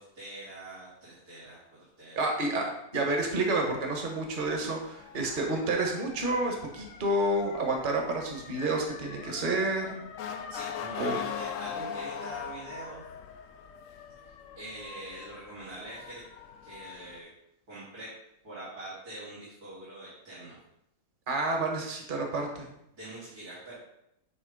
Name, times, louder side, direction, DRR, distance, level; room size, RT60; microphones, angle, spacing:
voice 1, 0.0-1.6 2.0-2.2 10.5-13.0 14.2-16.2 16.6-17.3 17.7-18.1 18.4-20.6 22.9-23.7, right 1 dB, 85° right, -9 dB, 3.0 m, -44 dB
voice 2, 2.2-10.0 11.0-11.2 21.3-22.7, right 2 dB, 35° right, 1 dB, 1.3 m, -29 dB
Motor vehicle (road) / Siren, 3.7-17.2, left 8 dB, 65° left, 0.9 m, -42 dB
9.3 x 3.2 x 5.1 m, 0.79 s
omnidirectional pair, 1.6 m